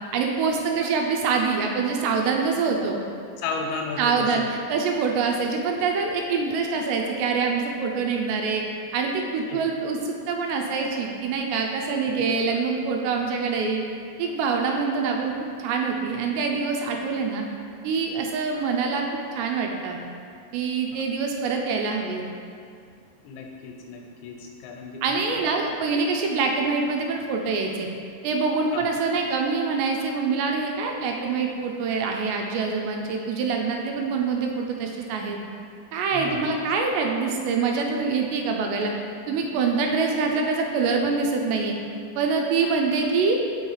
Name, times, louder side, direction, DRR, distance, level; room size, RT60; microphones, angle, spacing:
voice 1, 0.1-3.0 4.0-4.4 4.7-8.6 8.9-13.8 14.2-17.4 17.8-20.0 20.5-22.2 25.0-27.9 28.2-35.4 35.9-38.9 39.3-41.7 42.2-43.4, right 4 dB, 80° right, 2 dB, 2.6 m, -25 dB
voice 2, 3.4-4.5 9.4-9.7 12.2-12.6 23.2-25.5 28.7-28.9 36.1-36.4, left 4 dB, 85° left, 1 dB, 2.8 m, -34 dB
5.4 x 5.3 x 4.7 m, 2.3 s
omnidirectional pair, 5.2 m